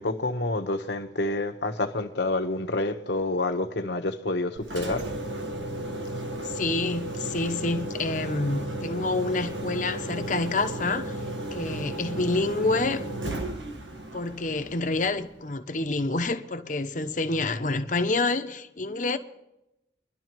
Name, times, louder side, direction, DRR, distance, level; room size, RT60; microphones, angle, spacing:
voice 1, 0.0-5.1, left 2 dB, 65° left, 1.1 m, -28 dB
Engine, 4.6-15.5, right 1 dB, 90° right, 1.6 m, -34 dB
voice 2, 6.5-11.1 11.5-13.0 14.1-19.2, left 3 dB, 45° left, 0.9 m, -28 dB
25.0 x 11.5 x 3.1 m
head